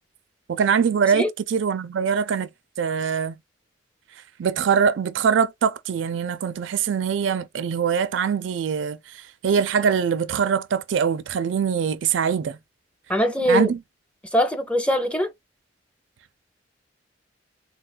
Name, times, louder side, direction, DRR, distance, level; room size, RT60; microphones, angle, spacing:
voice 1, 0.5-2.5 2.8-3.3 4.4-9.0 9.4-12.6 13.5-13.8, right 7 dB, 75° right, 0.4 m, -23 dB
voice 2, 13.1-13.7 14.3-15.3, equal, 5° left, 0.5 m, -21 dB
3.6 x 2.3 x 2.3 m
head